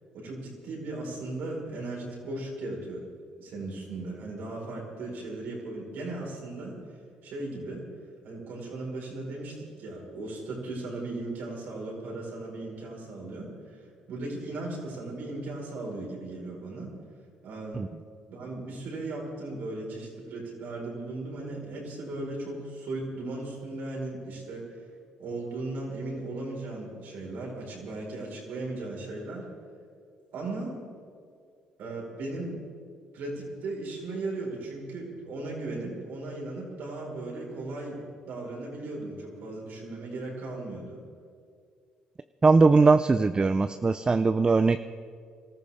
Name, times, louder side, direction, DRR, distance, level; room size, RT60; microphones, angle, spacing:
voice 1, 0.1-3.1 3.4-6.8 7.2-7.9 8.2-16.9 17.4-17.8 18.3-24.6 25.2-29.4 30.3-30.7 31.8-32.7 33.1-41.0, right 2 dB, 70° right, -2 dB, 4.9 m, -37 dB
voice 2, 42.4-44.8, right 4 dB, 25° right, 11 dB, 0.5 m, -20 dB
23.5 x 14.0 x 3.6 m, 2.2 s
supercardioid pair, 65°, 3 cm